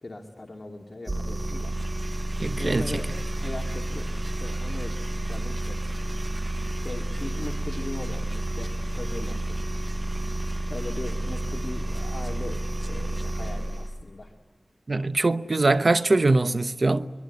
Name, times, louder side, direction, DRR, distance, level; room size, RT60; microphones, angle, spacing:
voice 1, 0.0-1.7 2.6-5.8 6.8-9.6 10.7-14.3, left 2 dB, 45° left, 2.4 m, -39 dB
sound 1, 1.1-14.0, right 1 dB, 40° right, 1.3 m, -30 dB
voice 2, 2.4-2.9 14.9-17.1, right 2 dB, 55° right, 0.9 m, -22 dB
24.5 x 23.5 x 9.6 m
wide cardioid pair, 50°, 0 cm